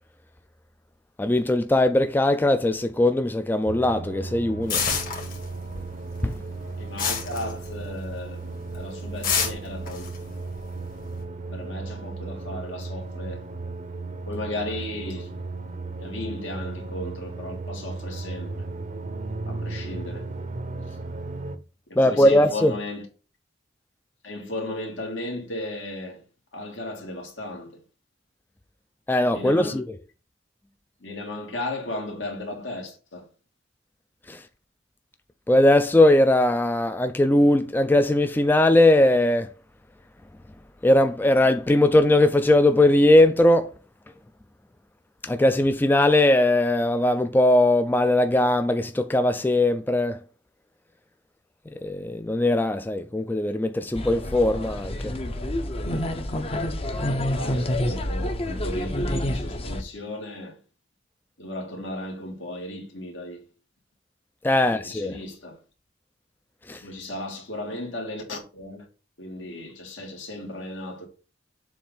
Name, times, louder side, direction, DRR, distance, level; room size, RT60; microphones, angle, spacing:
voice 1, 1.2-4.8 6.2-6.3 22.0-22.7 29.1-29.8 34.3-34.4 35.5-39.5 40.8-43.7 45.3-50.2 51.8-55.1 64.4-65.2 66.7-66.8, left 1 dB, 10° left, 0.3 m, -20 dB
sound 1, 3.7-21.6, right 3 dB, 45° right, 0.7 m, -35 dB
sound 2, 4.7-5.8 6.1-8.1 8.5-8.8 9.2-11.1, left 6 dB, 50° left, 1.8 m, -28 dB
voice 2, 6.8-10.1 11.5-13.4 14.3-15.3 15.9-18.6 19.5-20.3 21.9-23.1 24.2-26.2 26.5-27.8 29.3-29.8 31.0-33.3 57.0-60.6 61.4-63.4 64.5-65.6 66.8-68.8 69.2-71.1, left 1 dB, 75° left, 2.0 m, -35 dB
sound 3, 53.9-59.8, left 1 dB, 30° left, 0.7 m, -28 dB
7.2 x 2.6 x 5.4 m
head